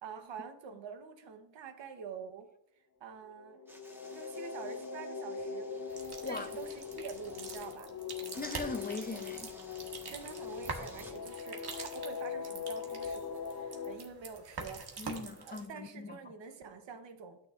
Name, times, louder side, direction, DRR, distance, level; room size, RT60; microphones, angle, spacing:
voice 1, 0.0-2.5 3.0-3.6 4.1-5.7 6.3-7.9 10.1-14.8 15.4-17.4, right 6 dB, 75° right, 1.1 m, -47 dB
sound 1, 3.3-13.9, left 6 dB, 45° left, 1.0 m, -42 dB
sound 2, 3.7-7.7 8.3-11.1, equal, 5° right, 1.4 m, -56 dB
sound 3, 5.9-15.7, right 4 dB, 60° right, 1.6 m, -46 dB
voice 2, 8.3-9.6 15.0-16.2, left 3 dB, 20° left, 0.6 m, -40 dB
11.5 x 6.6 x 2.5 m
cardioid pair, 95°, 44 cm